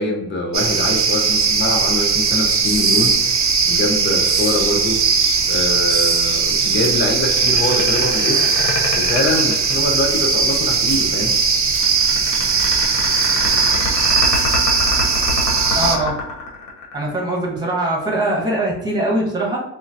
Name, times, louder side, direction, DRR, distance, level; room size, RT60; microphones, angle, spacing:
voice 1, 0.0-5.0 5.5-8.4 8.9-11.4, left 2 dB, 40° left, 1 dB, 0.8 m, -23 dB
sound 1, 0.5-16.0, right 5 dB, 45° right, 0.6 m, -18 dB
sound 2, 7.1-10.3 11.7-17.2, left 3 dB, 65° left, 1.0 m, -25 dB
voice 2, 15.7-16.2 16.9-19.6, right 1 dB, 15° right, -4 dB, 1.3 m, -21 dB
3.7 x 2.1 x 2.7 m, 0.81 s
cardioid pair, 90°, 30 cm